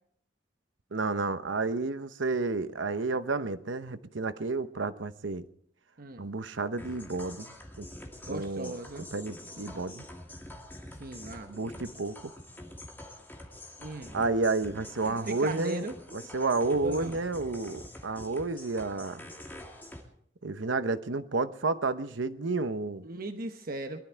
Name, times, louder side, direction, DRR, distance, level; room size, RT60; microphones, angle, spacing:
voice 1, 0.9-5.4 6.2-7.9 8.3-8.7 9.1-10.0 11.5-12.2 14.1-15.9 16.1-19.3 20.4-23.1, right 3 dB, 90° right, 12 dB, 0.9 m, -31 dB
sound 1, 6.8-20.0, left 1 dB, 10° left, 2.4 m, -46 dB
voice 2, 8.2-9.1 11.0-11.5 13.8-14.2 15.0-16.0 16.8-17.2 23.0-24.0, right 2 dB, 50° right, 6 dB, 1.0 m, -38 dB
22.0 x 12.5 x 4.6 m, 0.65 s
head